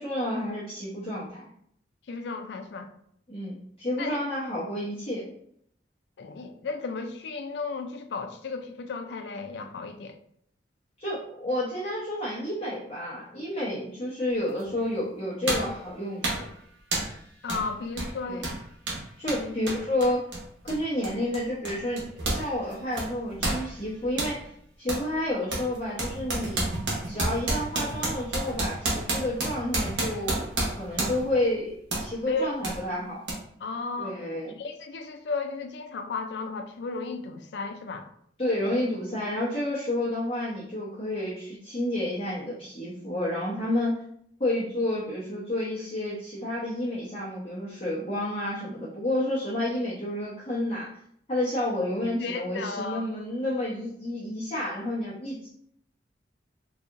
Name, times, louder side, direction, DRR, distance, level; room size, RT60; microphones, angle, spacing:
voice 1, 0.0-1.4 3.3-5.3 11.0-16.5 18.3-18.4 19.2-20.3 20.6-24.5 24.8-26.6 27.1-30.5 30.8-31.7 32.0-33.2 34.0-34.5 38.4-44.0 44.4-50.9 51.3-55.5, left 1 dB, 30° left, -9 dB, 0.8 m, -30 dB
voice 2, 2.1-2.9 4.0-4.2 6.2-10.2 17.4-18.5 19.4-19.5 32.3-32.5 33.6-34.2 34.5-38.1 52.2-53.1, left 4 dB, 70° left, 6 dB, 0.4 m, -34 dB
sound 1, 14.6-14.7 15.5-15.8 16.2-16.5 16.9-17.2 17.5-17.7 17.9-22.5 22.7-24.4 24.9-25.1 25.5-31.3 31.9-32.1 32.6-32.8 33.3-33.4, right 2 dB, 80° right, 1.1 m, -30 dB
3.9 x 2.8 x 2.5 m, 0.67 s
head